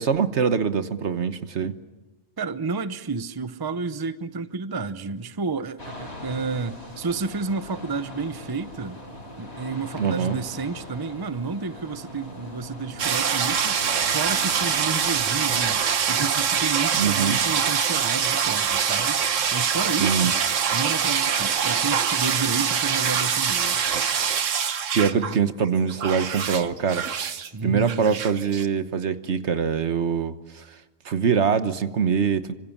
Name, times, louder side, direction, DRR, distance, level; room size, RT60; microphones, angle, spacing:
voice 1, 0.0-1.7 10.0-10.4 16.9-17.4 20.0-20.3 24.9-27.0 27.6-30.8 31.0-32.5, right 6 dB, 65° right, 11 dB, 1.4 m, -23 dB
voice 2, 2.4-9.0 9.4-15.8 16.1-19.2 19.5-20.4 20.7-23.8 25.1-25.5 27.5-28.2, right 4 dB, 20° right, 12 dB, 0.8 m, -31 dB
sound 1, 5.8-15.7, left 1 dB, 60° left, 6.1 m, -40 dB
sound 2, 13.0-25.4 25.6-27.5 27.9-28.7, right 7 dB, 90° right, 1.4 m, -24 dB
27.5 x 25.5 x 7.3 m, 1.1 s
omnidirectional pair, 1.3 m